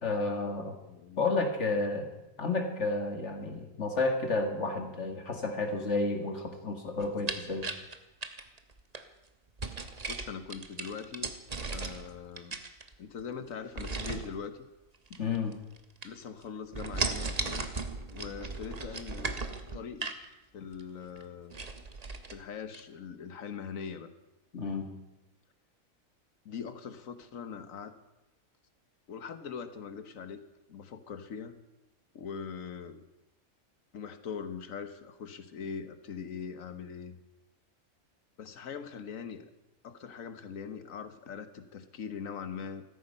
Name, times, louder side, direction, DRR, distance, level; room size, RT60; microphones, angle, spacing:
voice 1, 0.0-0.8 1.2-2.1 2.4-7.7 15.1-15.5 24.5-24.9, left 3 dB, 60° left, 5 dB, 2.1 m, -31 dB
voice 2, 0.8-1.2 10.1-11.3 11.7-12.6 13.0-14.7 16.0-17.7 18.1-19.4 19.7-20.1 20.5-21.6 22.3-24.1 26.4-27.9 29.1-30.4 30.7-31.6 32.1-33.0 33.9-37.1 38.4-39.5 39.8-42.8, left 6 dB, 75° left, 11 dB, 1.5 m, -41 dB
sound 1, 7.0-9.0 9.6-12.1 12.4-13.2 13.8-14.3 15.1-15.8 16.0-16.4 16.7-20.3 20.7-20.8 21.2-21.3 21.5-22.4 22.7-22.8, right 4 dB, 30° right, 1.0 m, -36 dB
15.0 x 14.0 x 5.5 m, 0.95 s
omnidirectional pair, 1.4 m